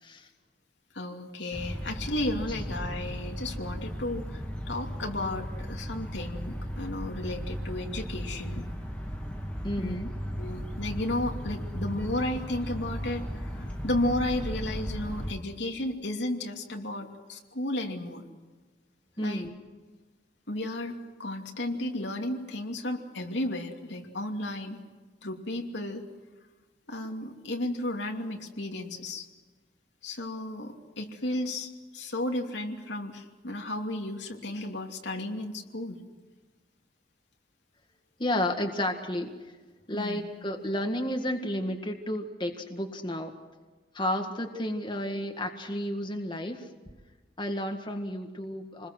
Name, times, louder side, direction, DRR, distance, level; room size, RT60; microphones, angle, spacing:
voice 1, 0.9-8.6 9.8-10.0 10.4-18.2 19.2-19.5 20.5-24.8 25.2-26.0 26.9-29.3 30.0-36.0 39.9-40.2, left 1 dB, 85° left, 2 dB, 2.8 m, -33 dB
sound 1, 1.5-15.3, equal, 5° left, 2.6 m, -36 dB
voice 2, 9.6-10.1 19.2-19.6 38.2-39.3 39.9-43.3 43.9-46.7 47.4-48.9, left 1 dB, 25° left, 3 dB, 1.9 m, -32 dB
28.5 x 21.0 x 6.4 m, 1.3 s
head